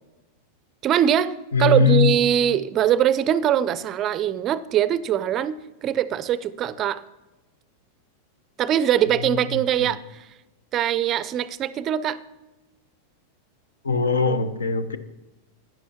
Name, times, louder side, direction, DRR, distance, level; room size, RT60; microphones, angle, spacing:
voice 1, 0.8-1.3 1.6-7.0 8.6-10.2 10.7-12.2, right 10 dB, 30° right, 17 dB, 0.4 m, -22 dB
voice 2, 1.5-2.1 9.2-9.9 13.8-15.0, left 4 dB, 70° left, 13 dB, 0.8 m, -21 dB
16.0 x 10.5 x 2.8 m, 1.1 s
figure-of-eight pair, 90°, 0 cm